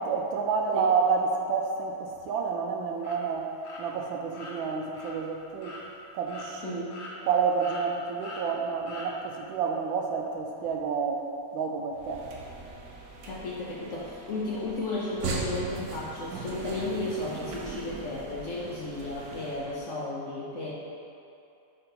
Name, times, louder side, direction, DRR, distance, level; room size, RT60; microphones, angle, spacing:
voice 1, 0.0-5.8 6.1-6.9 7.2-12.3, right 5 dB, 85° right, 2 dB, 1.4 m, -29 dB
sound 1, 3.0-3.2 3.6-3.8 4.3-4.5 4.9-5.1 5.6-5.8 6.3-6.5 6.9-7.3 7.6-7.8 8.2-8.4 8.9-9.1, left 2 dB, 50° left, 1.1 m, -42 dB
voice 2, 6.6-7.0 13.2-20.7, left 2 dB, 75° left, -5 dB, 0.6 m, -34 dB
sound 2, 11.9-19.8, right 4 dB, 65° right, 1.0 m, -39 dB
5.1 x 4.8 x 4.5 m, 2.6 s
omnidirectional pair, 2.1 m